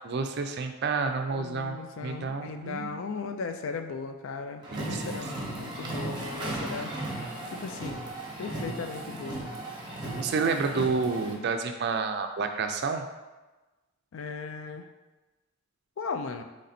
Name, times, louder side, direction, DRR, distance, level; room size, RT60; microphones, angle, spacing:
voice 1, 0.0-2.9 4.7-5.2 10.2-13.1, right 4 dB, 50° right, 6 dB, 0.4 m, -30 dB
voice 2, 1.3-6.9 7.5-8.0 8.4-9.4 10.7-10.9 14.1-14.9 16.0-16.4, left 4 dB, 65° left, 6 dB, 0.4 m, -37 dB
sound 1, 4.6-11.3, right 1 dB, 20° right, 0.9 m, -36 dB
3.9 x 3.2 x 4.2 m, 1.1 s
head